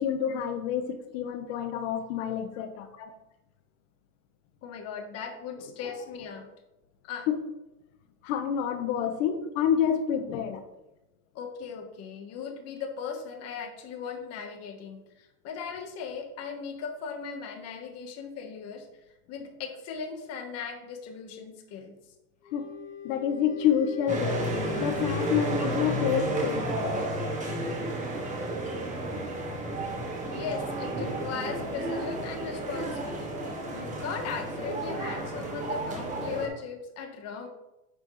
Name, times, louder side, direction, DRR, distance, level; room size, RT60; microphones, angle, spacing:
voice 1, 0.0-2.9 7.3-7.4 8.2-10.6 22.5-22.7 23.0-24.4 24.8-27.1, left 8 dB, 60° left, 8 dB, 1.2 m, -28 dB
voice 2, 1.5-1.8 2.2-2.3 3.0-3.1 4.6-6.5 7.0-7.3 9.0-9.1 11.3-18.9 19.3-22.0 25.6-25.7 30.2-33.3 33.7-37.5, left 6 dB, 35° left, 5 dB, 1.4 m, -38 dB
Wind instrument woodwind instrument, 22.4-26.0, left 5 dB, 20° left, 1.7 m, -39 dB
sound 1, 24.1-36.5, right 1 dB, 15° right, 1.6 m, -32 dB
9.9 x 6.2 x 3.2 m, 0.96 s
supercardioid pair, 150°, 43 cm